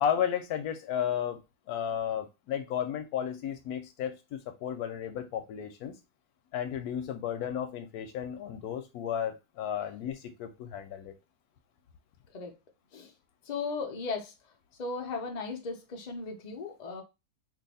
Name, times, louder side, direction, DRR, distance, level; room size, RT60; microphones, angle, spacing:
voice 1, 0.0-1.4 1.7-6.0 6.5-11.1, left 9 dB, 70° left, 8 dB, 1.0 m, -33 dB
voice 2, 13.5-14.3 14.8-17.0, left 4 dB, 90° left, 2 dB, 0.3 m, -36 dB
2.8 x 2.7 x 4.0 m, 0.25 s
omnidirectional pair, 1.9 m